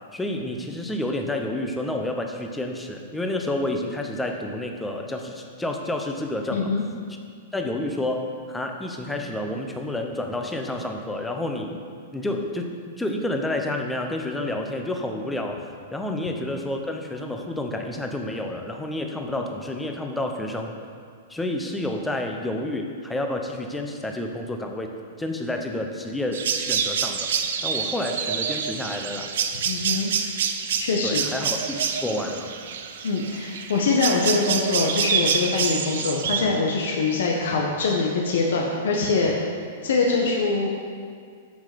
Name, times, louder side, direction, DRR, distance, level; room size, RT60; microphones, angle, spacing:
voice 1, 0.1-6.7 7.5-11.8 12.1-15.6 15.9-20.7 21.3-24.9 25.2-27.3 27.6-29.3 31.0-32.5, left 1 dB, 5° left, 3 dB, 0.8 m, -29 dB
voice 2, 6.5-6.8 16.1-16.2 29.6-30.1 30.8-31.2 33.0-39.5 39.8-40.7, left 4 dB, 75° left, -1 dB, 1.4 m, -23 dB
sound 1, 26.3-36.4, right 7 dB, 70° right, 0.9 m, -27 dB
14.0 x 5.7 x 5.2 m, 2.2 s
supercardioid pair, 165°, 0 cm